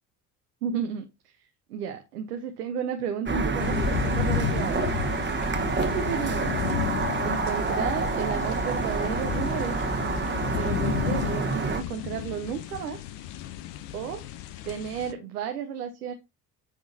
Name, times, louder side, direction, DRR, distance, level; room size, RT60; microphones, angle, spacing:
voice 1, 0.6-1.3 1.7-4.9 5.7-6.6 7.2-9.8 10.6-13.0 13.9-14.3 14.6-16.1, right 8 dB, 85° right, 0.8 m, -33 dB
sound 1, 3.3-11.8, right 3 dB, 25° right, 1.2 m, -28 dB
sound 2, 3.6-15.1, left 13 dB, 65° left, 0.8 m, -33 dB
9.4 x 3.7 x 2.7 m
hypercardioid pair, 55°, 46 cm